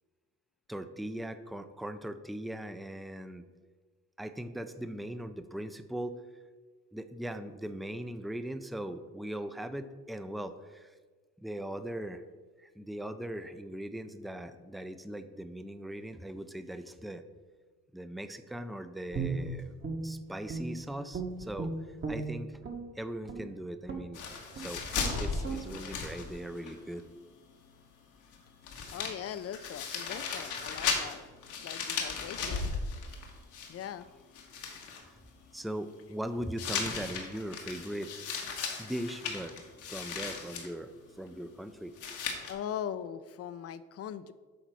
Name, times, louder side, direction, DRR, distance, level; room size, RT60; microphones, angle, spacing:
voice 1, 0.7-3.5 4.2-6.2 6.9-10.9 11.4-12.2 12.6-17.2 17.9-21.7 22.1-22.5 22.9-24.2 24.6-24.8 25.2-27.1 35.5-38.1 38.8-39.5 39.9-40.9 41.2-41.9, right 1 dB, ahead, 10 dB, 0.5 m, -39 dB
Guitar, 19.1-20.8 21.1-22.8 23.2-23.5 23.9-24.1 24.5-24.7 24.9-25.1 25.4-25.6, right 4 dB, 40° right, 1.5 m, -36 dB
sound 1, 24.1-26.7 27.0-27.1 28.3-28.4 28.6-34.0 34.4-35.0 36.6-40.7 42.0-42.5, left 5 dB, 90° left, 1.4 m, -36 dB
voice 2, 28.9-31.3 31.6-32.7 33.7-34.0 42.5-44.3, left 9 dB, 50° left, 14 dB, 0.5 m, -40 dB
8.6 x 4.0 x 6.2 m, 1.4 s
cardioid pair, 90°, 30 cm